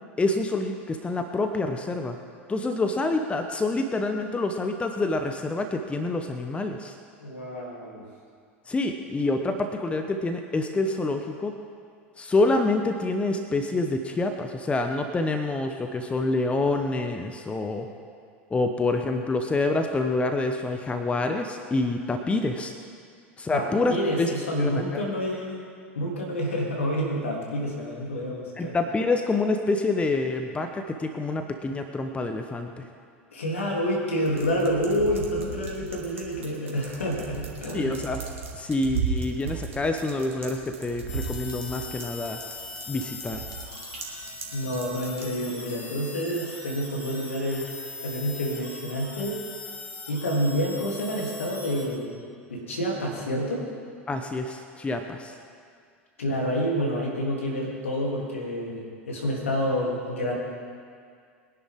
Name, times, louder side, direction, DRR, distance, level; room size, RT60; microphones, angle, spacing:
voice 1, 0.2-2.2 2.5-6.9 8.7-11.6 12.2-17.9 18.5-22.7 23.4-25.0 28.6-32.8 37.7-38.2 38.5-42.4 42.9-43.4 54.1-55.3, left 2 dB, 15° left, 5 dB, 1.1 m, -27 dB
voice 2, 7.2-8.0 23.5-25.6 25.9-28.8 33.3-37.9 44.5-47.7 48.0-49.4 50.1-52.1 52.5-53.7 56.2-60.3, equal, 80° left, -2 dB, 3.3 m, -28 dB
sound 1, 34.2-45.3, right 5 dB, 75° right, 2.2 m, -36 dB
sound 2, 41.1-51.9, left 3 dB, 60° left, 3.0 m, -41 dB
22.5 x 10.5 x 3.8 m, 2.2 s
figure-of-eight pair, 80°, 7 cm